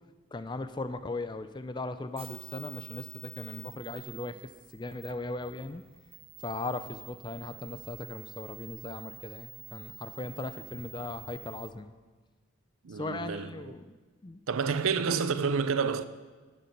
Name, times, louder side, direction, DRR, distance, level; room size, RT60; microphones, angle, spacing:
voice 1, 0.3-4.4 4.7-5.8 6.4-11.9 12.9-14.0 14.2-14.4 15.1-15.3, left 2 dB, 20° left, 0.4 m, -38 dB
sound 1, 2.1-11.7, right 9 dB, 25° right, 0.9 m, -48 dB
voice 2, 12.8-13.7 14.5-16.1, right 5 dB, 85° right, 0.6 m, -29 dB
12.5 x 8.3 x 5.9 m
head